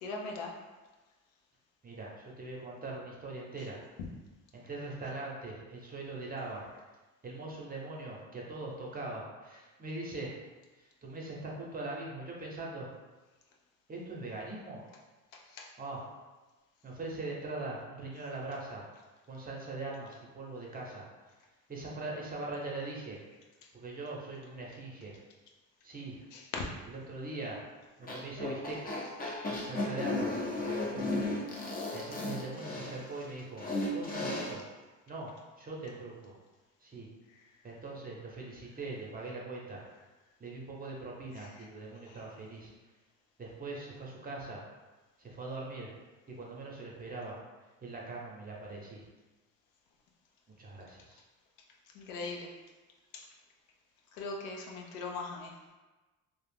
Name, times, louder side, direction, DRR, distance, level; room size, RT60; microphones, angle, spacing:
voice 1, 0.0-0.5 15.3-15.7 26.3-26.7 41.4-41.7 42.1-42.2 51.9-52.5 53.1-53.3 54.1-55.5, left 3 dB, 85° left, 0 dB, 0.6 m, -40 dB
voice 2, 1.8-3.8 4.5-6.7 7.2-10.3 11.0-12.9 13.9-14.8 15.8-16.1 16.8-18.9 19.3-21.1 21.7-23.2 23.7-25.2 25.8-26.2 26.9-27.6 28.0-28.9 29.5-31.4 31.9-33.7 33.9-34.6 35.1-35.3 35.6-36.4 36.8-37.1 37.6-39.8 40.4-42.7 43.4-44.6 45.2-45.9 46.4-47.4 47.8-49.0 50.6-51.2, right 2 dB, 25° right, -3 dB, 0.7 m, -41 dB
sound 1, 28.0-34.5, left 2 dB, 25° left, 0.6 m, -35 dB
2.3 x 2.1 x 3.3 m, 1.2 s
supercardioid pair, 70°, 38 cm